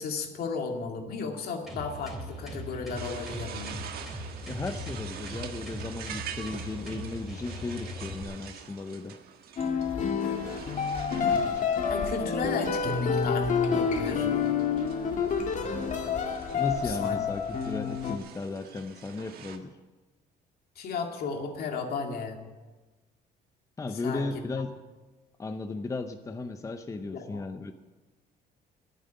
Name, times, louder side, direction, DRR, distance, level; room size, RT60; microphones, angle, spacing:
voice 1, 0.0-3.7 11.1-11.5 11.9-14.3 16.8-17.2 20.8-22.4 24.0-24.3 27.0-27.4, left 5 dB, 65° left, 3 dB, 2.2 m, -34 dB
sound 1, 1.7-8.2, equal, ahead, 3.4 m, -40 dB
sound 2, 2.9-19.6, right 8 dB, 65° right, 1.5 m, -46 dB
voice 2, 4.5-9.2 16.5-19.8 23.8-24.7 25.4-27.7, left 3 dB, 20° left, 8 dB, 0.7 m, -35 dB
sound 3, 9.6-18.2, left 6 dB, 45° left, 1.7 m, -28 dB
10.5 x 9.4 x 10.0 m, 1.2 s
cardioid pair, 110°, 17 cm